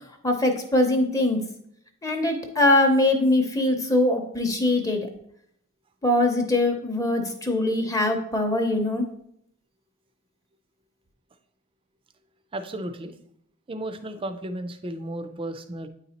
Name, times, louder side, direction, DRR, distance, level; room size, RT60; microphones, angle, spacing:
voice 1, 0.2-1.4 2.0-5.1 6.0-9.1, left 1 dB, 15° left, 4 dB, 0.7 m, -22 dB
voice 2, 12.5-13.1 13.7-15.9, right 1 dB, 25° right, 9 dB, 0.4 m, -34 dB
8.8 x 4.0 x 2.9 m, 0.71 s
head